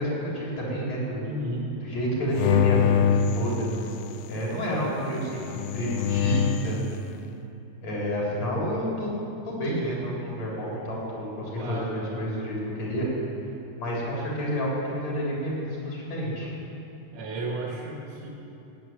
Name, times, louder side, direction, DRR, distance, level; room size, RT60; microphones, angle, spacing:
voice 1, 0.0-1.3 1.8-2.9 3.3-3.7 4.3-6.8 7.8-9.2 9.5-13.1 13.8-16.5, equal, 65° left, -5 dB, 5.4 m, -29 dB
voice 2, 1.2-1.7 11.6-11.9 17.1-18.3, right 1 dB, 70° right, -2 dB, 2.9 m, -33 dB
sound 1, 2.4-4.3 5.3-6.8, left 8 dB, 80° left, 1.5 m, -25 dB
15.5 x 8.3 x 9.5 m, 2.9 s
omnidirectional pair, 3.3 m